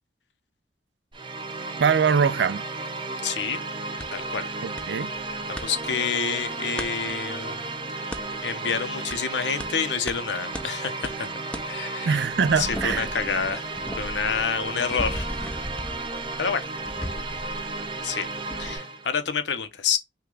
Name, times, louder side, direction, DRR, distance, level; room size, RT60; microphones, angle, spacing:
sound 1, 1.1-19.1, right 3 dB, 30° right, 0.7 m, -34 dB
voice 1, 1.8-2.6 4.6-5.1 12.0-13.1, right 6 dB, 70° right, 0.4 m, -23 dB
voice 2, 3.2-3.6 4.1-4.5 5.5-7.7 8.0-8.1 8.4-11.3 11.7-12.2 12.6-13.7 14.0-15.3 16.4-16.6 17.4-17.5 18.0-18.3 18.6-20.0, left 6 dB, 75° left, 0.8 m, -28 dB
sound 2, 4.0-4.1 4.8-4.9 5.2-5.7 6.8-6.9 8.1-8.2 9.1-9.2 9.6-9.7 10.1-10.2 10.5-10.7 11.0-11.2 11.5-11.7 12.1-18.1 18.5-18.8, equal, 5° left, 0.5 m, -36 dB
5.9 x 2.3 x 3.7 m
head